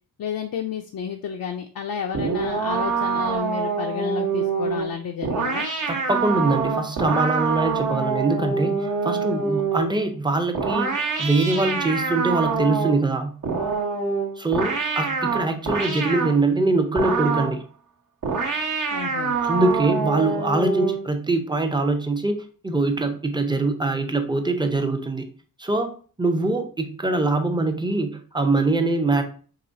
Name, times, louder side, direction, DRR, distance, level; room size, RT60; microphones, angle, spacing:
voice 1, 0.2-5.7 18.9-19.4, left 8 dB, 75° left, 3 dB, 0.5 m, -31 dB
sound 1, 2.1-10.0 10.5-13.1 13.4-16.4 17.0-17.6 18.2-21.1, right 5 dB, 60° right, 0.9 m, -25 dB
voice 2, 5.9-13.3 14.4-17.6 19.4-22.4 22.6-25.3 25.6-29.2, right 2 dB, 15° right, 6 dB, 0.5 m, -23 dB
4.9 x 3.1 x 2.6 m, 0.41 s
wide cardioid pair, 135°, 35 cm